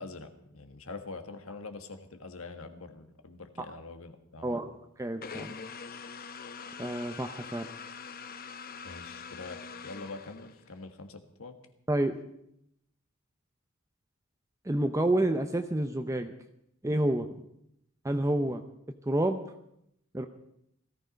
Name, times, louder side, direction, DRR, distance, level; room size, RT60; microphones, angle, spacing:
voice 1, 0.0-4.6 8.8-11.6, left 3 dB, 80° left, 7 dB, 1.6 m, -44 dB
voice 2, 5.0-5.6 6.8-7.7 11.9-12.1 14.7-16.3 16.8-17.3 18.0-18.6 19.1-19.4 20.1-20.3, right 1 dB, 15° right, 6 dB, 0.7 m, -28 dB
sound 1, 5.2-10.8, left 5 dB, 45° left, 0.8 m, -44 dB
17.5 x 14.0 x 5.2 m, 0.77 s
head